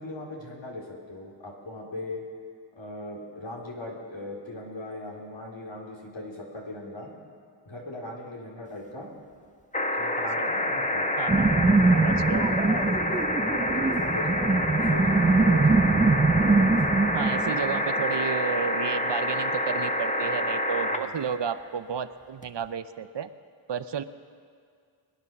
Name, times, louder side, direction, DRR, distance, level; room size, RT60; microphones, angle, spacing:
voice 1, 0.0-2.2 2.8-7.1 7.7-9.1 10.0-11.1 11.5-11.6 12.0-17.0 20.9-21.1, left 2 dB, 70° left, -2 dB, 3.4 m, -39 dB
sound 1, 9.7-21.0 22.4-22.5, left 1 dB, 15° left, 1.4 m, -27 dB
voice 2, 11.2-11.7 11.9-12.4 17.1-23.3 23.7-24.0, right 7 dB, 65° right, 12 dB, 0.8 m, -32 dB
sound 2, 11.3-18.0, right 3 dB, 15° right, 0.4 m, -23 dB
22.5 x 9.7 x 6.0 m, 2.2 s
cardioid pair, 40°, 46 cm